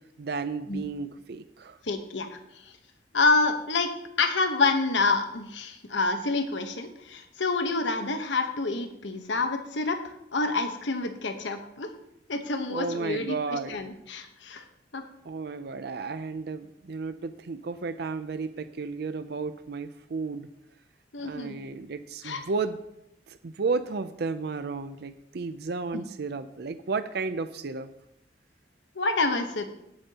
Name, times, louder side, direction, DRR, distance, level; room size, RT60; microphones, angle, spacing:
voice 1, 0.0-1.8 12.7-13.8 15.2-20.5 21.2-22.8 23.3-27.9, right 4 dB, 60° right, 11 dB, 0.5 m, -33 dB
voice 2, 1.8-2.4 3.1-11.9 12.3-14.6 14.9-15.0 21.1-21.6 22.2-22.4 25.9-26.1 28.9-29.7, left 3 dB, 80° left, 6 dB, 1.1 m, -28 dB
17.5 x 8.8 x 2.9 m, 0.82 s
head